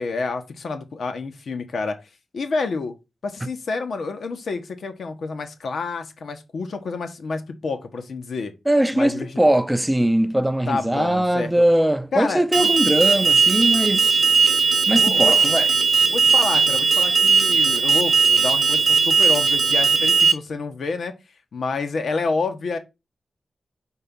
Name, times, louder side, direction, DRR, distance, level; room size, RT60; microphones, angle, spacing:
voice 1, 0.0-2.0 2.3-2.9 3.2-8.5 8.9-9.4 10.7-11.5 12.1-12.7 14.9-15.4 16.1-21.1 21.5-22.8, left 4 dB, 75° left, 1.2 m, -28 dB
voice 2, 8.7-14.2 14.9-15.7, right 1 dB, 10° right, 0.5 m, -20 dB
Alarm, 12.5-20.3, right 5 dB, 45° right, 0.9 m, -18 dB
4.4 x 4.4 x 5.4 m
wide cardioid pair, 105°, 0 cm